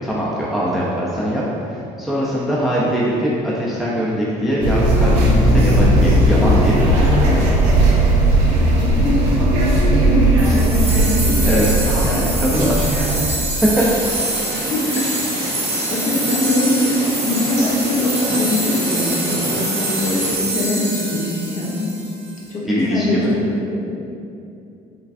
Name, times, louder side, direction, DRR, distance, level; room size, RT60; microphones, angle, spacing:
voice 1, 0.0-7.4 11.4-11.7 12.0-13.2 13.8-13.9 15.0-15.1 22.7-23.3, equal, ahead, -6 dB, 0.4 m, -22 dB
sound 1, 4.6-13.3, right 1 dB, 85° right, 0.5 m, -16 dB
voice 2, 8.8-9.2 9.7-11.4 14.5-15.0 15.4-15.5 15.9-21.8 22.5-23.2 23.7-23.8, left 1 dB, 35° left, -5 dB, 0.8 m, -22 dB
sound 2, 10.4-22.4, right 2 dB, 30° right, 0.7 m, -25 dB
sound 3, 13.7-20.4, equal, 85° left, 1.3 m, -29 dB
3.3 x 2.3 x 2.4 m, 2.6 s
hypercardioid pair, 65°, 20 cm